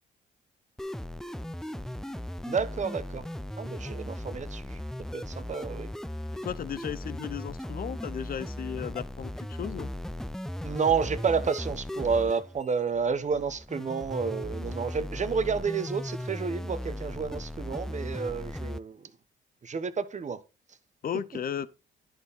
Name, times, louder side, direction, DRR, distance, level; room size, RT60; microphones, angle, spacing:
sound 1, 0.8-18.8, left 1 dB, ahead, 0.4 m, -37 dB
voice 1, 2.4-3.2 3.6-4.8 5.1-5.9 10.6-19.1 19.6-20.4, right 5 dB, 35° right, 1.1 m, -30 dB
voice 2, 6.4-9.9 21.0-21.7, left 8 dB, 45° left, 0.7 m, -35 dB
11.0 x 4.3 x 5.5 m
cardioid pair, 90°, 20 cm